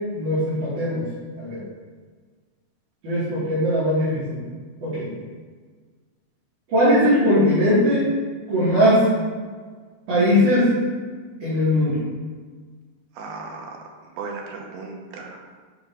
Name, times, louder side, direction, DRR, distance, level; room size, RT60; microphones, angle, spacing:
voice 1, 0.1-1.0 1.4-1.6 3.0-4.4 4.8-5.1 6.7-8.0 8.5-9.1 10.1-10.7 11.4-12.0, equal, 55° right, -11 dB, 3.6 m, -19 dB
voice 2, 13.2-13.9 14.1-15.4, right 4 dB, 80° right, 1 dB, 2.9 m, -36 dB
10.0 x 5.7 x 2.7 m, 1.5 s
omnidirectional pair, 4.4 m